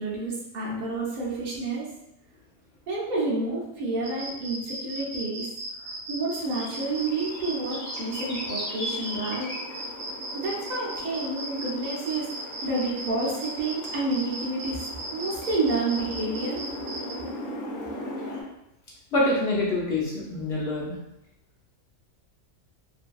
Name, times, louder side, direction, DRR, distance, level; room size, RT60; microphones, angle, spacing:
voice 1, 0.0-1.9 2.9-5.5 5.8-9.5 10.3-12.3 12.6-16.6, right 2 dB, 50° right, -6 dB, 0.6 m, -29 dB
sound 1, 4.0-17.1, right 1 dB, 75° right, 0.9 m, -36 dB
sound 2, 6.4-18.4, left 1 dB, 75° left, 1.0 m, -38 dB
voice 2, 19.1-20.9, left 2 dB, 60° left, -6 dB, 0.8 m, -25 dB
2.6 x 2.6 x 2.3 m, 0.87 s
omnidirectional pair, 1.4 m